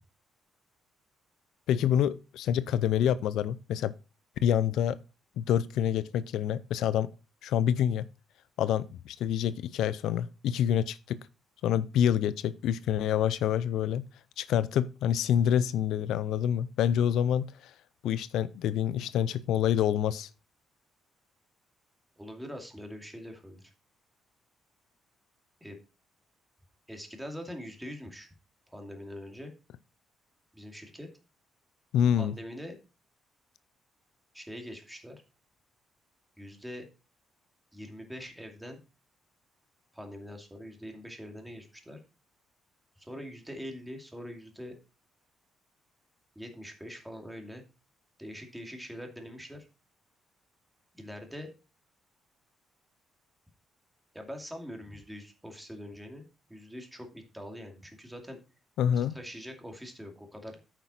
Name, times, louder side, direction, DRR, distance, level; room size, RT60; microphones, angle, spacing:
voice 1, 1.7-3.9 4.4-5.0 5.4-7.1 7.4-8.1 8.6-11.2 11.6-14.0 14.4-17.5 18.0-20.3 31.9-32.3 58.8-59.2, left 9 dB, 85° left, 0.4 m, -27 dB
voice 2, 22.2-23.7 25.6-25.8 26.9-28.3 28.7-29.5 30.5-31.1 32.2-32.8 34.3-35.2 36.4-36.9 37.7-38.8 39.9-42.0 43.0-44.7 46.4-47.6 48.2-49.7 50.9-51.5 54.1-58.4 58.9-60.6, equal, 5° right, 2.5 m, -43 dB
9.1 x 5.9 x 4.3 m
cardioid pair, 90°, 0 cm